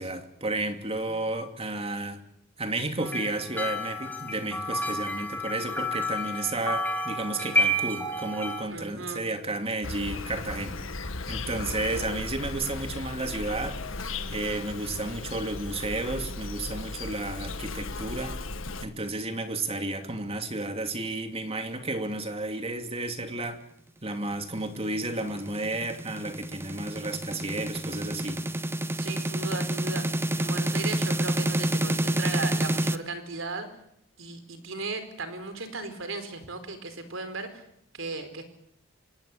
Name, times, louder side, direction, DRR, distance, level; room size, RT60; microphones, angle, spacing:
voice 1, 0.0-2.2 2.6-10.8 11.3-18.4 18.8-23.6 24.0-28.4, right 2 dB, 30° right, 6 dB, 2.8 m, -32 dB
sound 1, 3.0-8.6, equal, 10° left, 3.6 m, -30 dB
voice 2, 8.7-9.2 28.9-30.1 30.4-33.7 34.2-37.6 37.9-38.4, right 3 dB, 75° right, 9 dB, 4.5 m, -36 dB
Insect, 9.8-18.8, left 3 dB, 75° left, 1.8 m, -36 dB
sound 2, 24.9-33.0, right 1 dB, 10° right, 1.0 m, -28 dB
26.0 x 19.0 x 8.6 m, 0.75 s
head